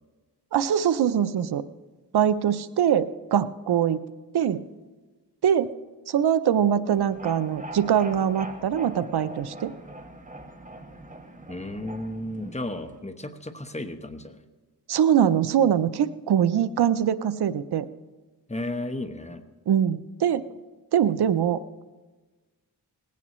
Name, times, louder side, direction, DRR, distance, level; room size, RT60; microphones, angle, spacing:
voice 1, 0.5-1.6 2.1-4.0 4.3-4.6 5.4-5.7 6.1-9.7 14.9-17.9 19.7-20.4 20.9-21.8, right 9 dB, 70° right, 14 dB, 0.7 m, -23 dB
sound 1, 6.9-13.0, right 1 dB, 20° right, 1.5 m, -41 dB
voice 2, 11.5-14.4 18.5-19.4, left 1 dB, 15° left, 8 dB, 1.1 m, -34 dB
19.0 x 16.0 x 3.1 m, 1.3 s
cardioid pair, 65°, 40 cm